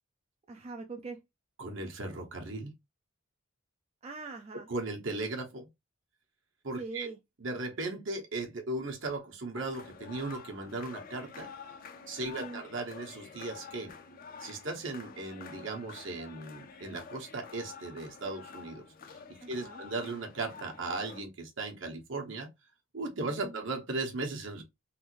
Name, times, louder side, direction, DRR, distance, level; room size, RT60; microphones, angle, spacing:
voice 1, 0.5-1.2 4.0-4.7 6.8-7.2 12.2-12.6 19.4-19.8 23.3-23.6, right 3 dB, 30° right, 0.4 m, -43 dB
voice 2, 1.6-2.7 4.7-5.7 6.6-7.1 7.4-11.5 12.1-13.9 14.4-18.8 19.5-22.5 22.9-24.6, right 2 dB, 65° right, 1.1 m, -37 dB
sound 1, 9.5-21.2, left 5 dB, 45° left, 0.5 m, -49 dB
3.4 x 2.5 x 3.0 m
head